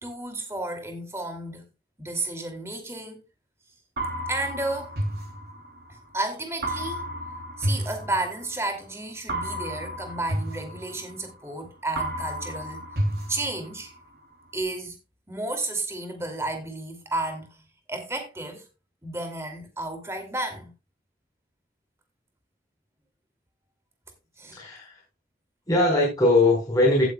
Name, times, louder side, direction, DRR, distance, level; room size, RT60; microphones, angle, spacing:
voice 1, 0.0-1.6 2.0-3.2 4.3-5.0 6.1-7.1 7.6-12.8 13.3-13.9 14.5-15.0 15.3-18.7 19.0-20.7 24.4-24.6, right 2 dB, 15° right, 2.6 m, -32 dB
sound 1, 4.0-6.0 6.6-8.7 9.3-11.6 12.0-14.0, right 1 dB, 65° right, 3.0 m, -31 dB
voice 2, 24.5-25.0 25.7-27.0, left 2 dB, 20° left, 4.6 m, -21 dB
16.5 x 8.0 x 2.3 m
head